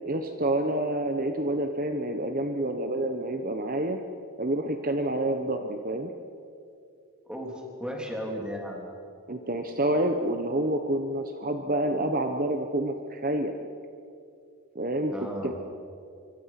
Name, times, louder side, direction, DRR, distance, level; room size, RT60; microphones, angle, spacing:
voice 1, 0.0-4.0 4.4-6.1 9.3-13.5 14.7-15.5, right 1 dB, 40° right, 5 dB, 1.1 m, -28 dB
voice 2, 7.3-8.9 15.1-15.5, equal, 5° right, 0 dB, 3.5 m, -35 dB
26.0 x 25.0 x 6.0 m, 2.5 s
head